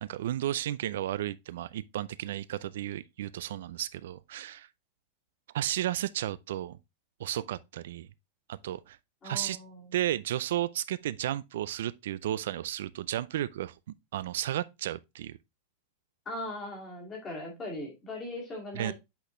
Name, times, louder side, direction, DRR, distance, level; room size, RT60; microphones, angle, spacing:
voice 1, 0.0-4.7 5.5-6.8 7.2-8.1 8.5-9.0 9.2-9.6 9.9-13.8 14.1-15.4 18.7-18.9, right 12 dB, 70° right, 0.3 m, -33 dB
voice 2, 9.2-9.9 16.3-18.9, left 1 dB, 15° left, 2.1 m, -39 dB
8.0 x 4.2 x 3.0 m
supercardioid pair, 180°, 0 cm